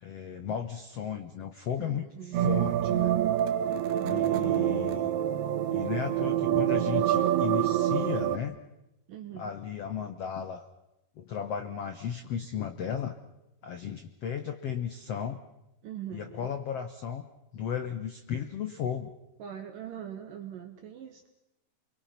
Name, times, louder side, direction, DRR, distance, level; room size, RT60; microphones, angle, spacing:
voice 1, 0.0-2.1 2.3-3.2 4.0-5.1 5.7-8.6 9.3-10.7 11.2-13.2 13.6-15.4 16.1-17.2 17.5-19.1, left 8 dB, 70° left, 7 dB, 1.4 m, -35 dB
voice 2, 1.8-2.6 3.9-4.4 9.1-9.5 15.8-16.5 19.4-21.3, right 10 dB, 65° right, 4 dB, 2.8 m, -42 dB
sound 1, 2.3-8.4, right 11 dB, 80° right, 3.1 m, -26 dB
29.5 x 23.0 x 5.9 m, 0.91 s
omnidirectional pair, 4.5 m